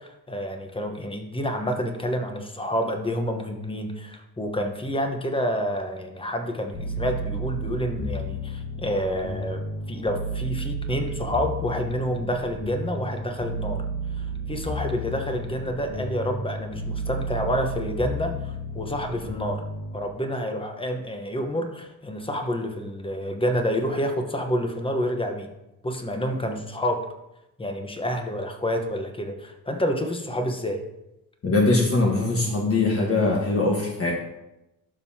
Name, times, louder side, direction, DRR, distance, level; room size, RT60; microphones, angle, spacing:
voice 1, 0.0-13.8 14.2-19.6 19.9-25.5 25.8-27.0 27.6-30.8, equal, 15° left, 4 dB, 1.0 m, -28 dB
sound 1, 6.7-20.1, right 1 dB, 70° left, 1.5 m, -32 dB
voice 2, 31.4-34.1, left 2 dB, 40° left, -2 dB, 1.4 m, -22 dB
12.0 x 5.5 x 2.8 m, 0.91 s
cardioid pair, 100°, 34 cm